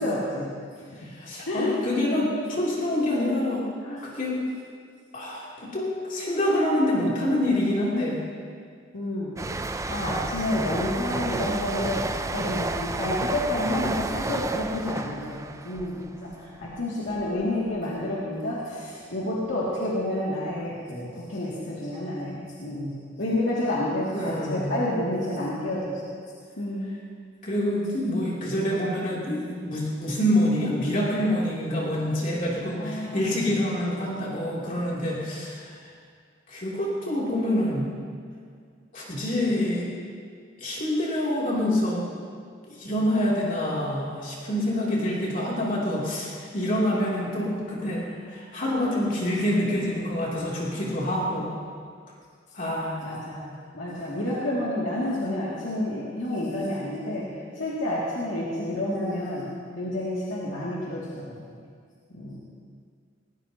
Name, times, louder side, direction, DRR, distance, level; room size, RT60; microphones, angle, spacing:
voice 1, 0.0-1.1 1.4-1.7 3.8-4.1 8.9-26.0 26.6-26.9 28.0-28.1 32.8-33.6 53.0-57.3 57.5-59.5 59.7-61.6 62.1-62.4, left 1 dB, 90° left, -7 dB, 2.5 m, -30 dB
voice 2, 1.0-3.6 4.1-4.4 5.1-8.2 24.1-24.9 27.4-35.8 36.5-37.9 38.9-39.9 40.6-42.1 42.7-51.5 52.5-53.0, left 1 dB, 45° left, -6 dB, 3.1 m, -26 dB
sound 1, 9.4-16.8 17.1-17.4, right 2 dB, 15° right, 0.4 m, -31 dB
20.0 x 19.0 x 2.9 m, 2.1 s
head